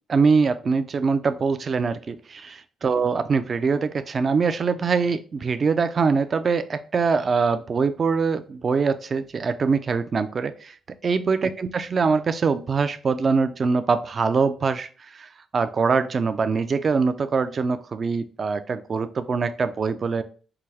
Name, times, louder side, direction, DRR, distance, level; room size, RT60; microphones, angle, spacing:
voice 1, 0.1-10.7 11.0-20.2, right 5 dB, 40° right, 11 dB, 0.4 m, -23 dB
4.7 x 2.3 x 3.2 m, 0.40 s
cardioid pair, 90°, 0 cm